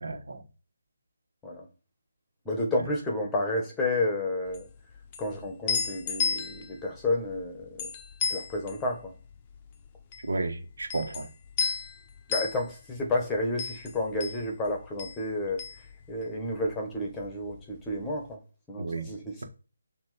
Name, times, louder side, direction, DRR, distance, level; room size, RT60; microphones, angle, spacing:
voice 1, 0.0-0.4 10.3-11.3 18.8-19.1, right 3 dB, 75° right, 1.7 m, -32 dB
voice 2, 2.5-4.7 5.2-7.9 8.3-9.1 12.3-18.4 18.7-19.4, left 2 dB, 10° left, 1.6 m, -31 dB
sound 1, 4.5-16.7 17.0-18.1, left 6 dB, 25° left, 0.7 m, -35 dB
7.1 x 3.1 x 5.2 m
figure-of-eight pair, 160°, 0 cm